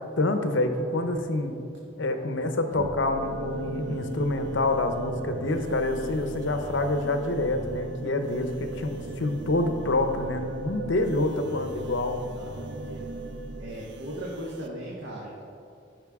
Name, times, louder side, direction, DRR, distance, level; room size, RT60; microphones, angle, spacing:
voice 1, 0.0-1.6 2.0-12.2, left 2 dB, 75° left, 7 dB, 0.8 m, -27 dB
sound 1, 2.7-14.7, right 2 dB, 60° right, 0.5 m, -38 dB
voice 2, 12.2-13.1 13.6-15.4, right 1 dB, 80° right, -5 dB, 1.4 m, -38 dB
14.5 x 5.6 x 3.6 m, 2.5 s
head